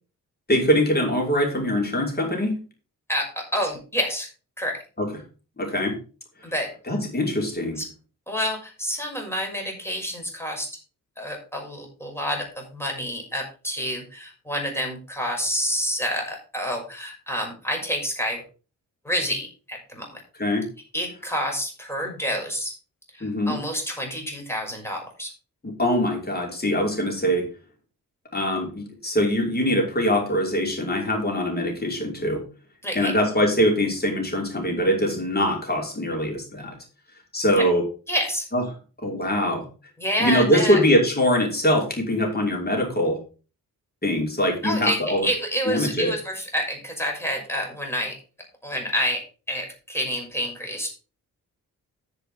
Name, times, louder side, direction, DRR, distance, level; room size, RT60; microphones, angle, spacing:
voice 1, 0.5-2.6 5.0-5.1 5.6-6.0 6.9-7.8 20.4-20.7 23.2-23.6 25.8-27.5 28.3-32.4 32.9-36.8 37.3-37.8 38.5-38.6 39.0-39.7 40.2-43.2 44.0-45.3 45.7-46.1, equal, 25° left, 0 dB, 5.6 m, -23 dB
voice 2, 3.1-4.3 4.6-4.8 6.4-6.7 7.8-7.9 8.3-10.7 11.2-18.4 19.0-20.2 20.9-22.7 23.1-25.3 32.8-33.1 37.6-37.7 38.1-38.5 40.0-40.8 44.6-48.2 48.6-50.9, equal, 5° left, 1 dB, 6.0 m, -28 dB
11.0 x 6.9 x 5.1 m, 0.35 s
cardioid pair, 85°, 34 cm